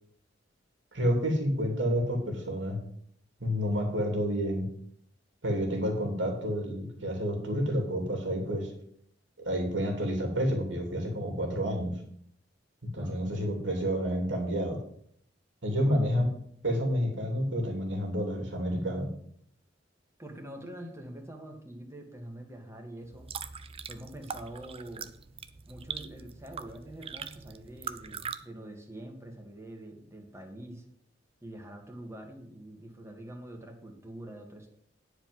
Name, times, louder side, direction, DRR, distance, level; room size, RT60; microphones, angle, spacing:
voice 1, 0.9-2.8 3.4-4.7 5.4-8.7 9.4-12.0 12.9-14.8 15.6-16.3 16.6-19.1, equal, 75° right, 3 dB, 2.7 m, -29 dB
voice 2, 20.2-23.3 23.9-25.1 25.7-30.8 31.4-34.8, right 1 dB, 15° right, 2 dB, 1.9 m, -45 dB
sound 1, 23.0-28.4, right 6 dB, 30° right, 0.5 m, -41 dB
10.0 x 4.9 x 7.7 m, 0.67 s
head